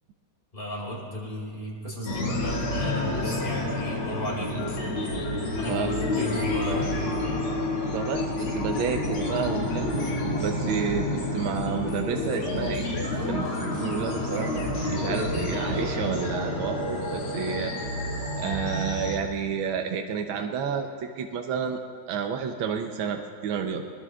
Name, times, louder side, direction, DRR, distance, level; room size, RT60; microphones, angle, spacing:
voice 1, 0.5-4.5 5.6-6.9, left 1 dB, 25° left, -4 dB, 4.7 m, -35 dB
sound 1, 2.1-19.2, left 1 dB, 85° left, 3.1 m, -29 dB
voice 2, 7.9-9.9 10.4-17.7 18.4-21.8 22.1-23.9, right 6 dB, 80° right, 4 dB, 1.6 m, -30 dB
24.5 x 21.0 x 2.4 m, 2.3 s
omnidirectional pair, 2.2 m